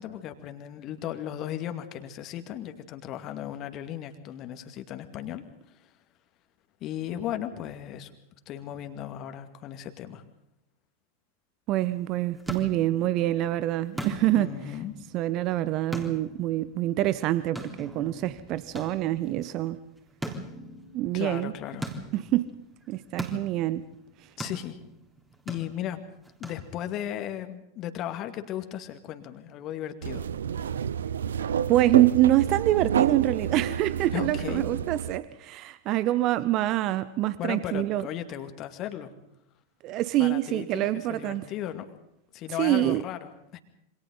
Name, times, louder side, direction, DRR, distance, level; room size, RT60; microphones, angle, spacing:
voice 1, 0.0-5.9 6.8-8.1 8.5-10.2 14.4-14.9 21.1-21.9 24.4-24.8 25.5-26.0 26.4-30.2 34.1-34.7 37.4-39.1 40.2-42.0 42.3-43.6, left 11 dB, 35° left, 2.3 m, -36 dB
voice 2, 11.7-14.5 15.1-19.8 20.9-21.5 22.1-22.5 22.9-23.9 31.7-38.0 39.8-41.4 42.6-43.0, right 14 dB, 40° right, 0.9 m, -25 dB
sound 1, 11.9-27.1, right 1 dB, 10° right, 3.6 m, -42 dB
sound 2, 30.0-35.2, right 8 dB, 65° right, 0.7 m, -29 dB
28.0 x 25.5 x 4.0 m
figure-of-eight pair, 90°, 0 cm